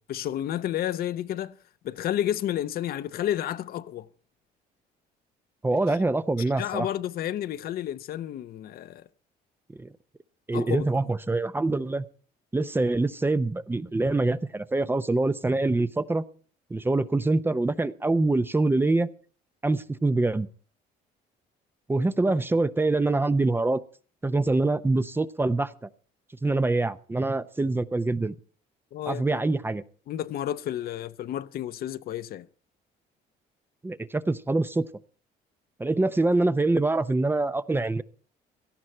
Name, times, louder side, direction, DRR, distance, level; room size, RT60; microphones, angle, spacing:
voice 1, 0.1-1.6 1.8-4.1 5.9-6.0 6.6-9.1 10.5-10.9 28.9-29.4 30.1-32.5, left 11 dB, 65° left, 0.8 m, -31 dB
voice 2, 5.6-6.9 9.8-9.9 10.5-12.1 12.5-16.2 16.7-19.1 19.6-20.5 21.9-23.8 24.2-25.7 26.4-28.3 29.1-29.8 33.8-34.8 35.8-38.0, right 2 dB, 15° right, 0.6 m, -25 dB
17.5 x 12.5 x 4.4 m
cardioid pair, 110°, 17 cm